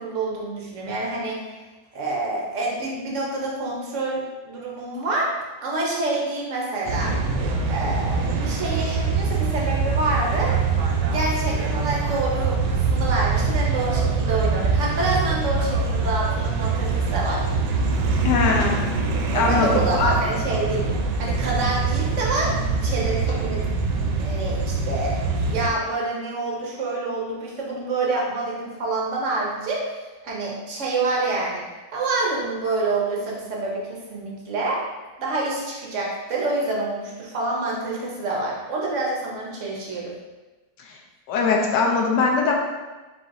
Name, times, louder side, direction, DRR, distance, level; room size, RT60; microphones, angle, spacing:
voice 1, 0.0-1.6 1.9-5.3 5.6-7.2 7.7-10.6 11.0-17.4 19.3-22.5 22.8-23.7 24.2-25.2 25.5-29.9 30.2-31.6 31.9-34.8 35.2-40.1, right 2 dB, 55° right, -3 dB, 0.9 m, -27 dB
sound 1, 6.9-25.7, right 4 dB, 75° right, 1.2 m, -24 dB
voice 2, 18.2-18.8 19.3-20.1 40.9-41.0 41.3-42.6, left 4 dB, 75° left, 0 dB, 1.2 m, -21 dB
4.3 x 3.9 x 2.5 m, 1.2 s
omnidirectional pair, 2.0 m